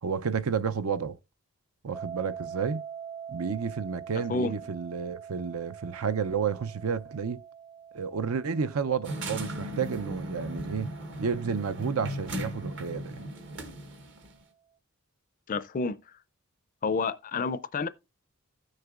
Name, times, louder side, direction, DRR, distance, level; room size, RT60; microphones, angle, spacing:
voice 1, 0.0-1.2 1.8-2.8 3.3-7.4 7.9-10.9 11.2-13.2, right 6 dB, 75° right, 0.5 m, -31 dB
sound 1, 1.9-12.9, right 8 dB, 15° right, 0.6 m, -45 dB
sound 2, 9.0-14.3, equal, 55° right, 1.2 m, -37 dB
voice 2, 15.5-16.0 16.8-17.9, left 4 dB, 35° left, 0.4 m, -29 dB
15.5 x 6.5 x 2.4 m
head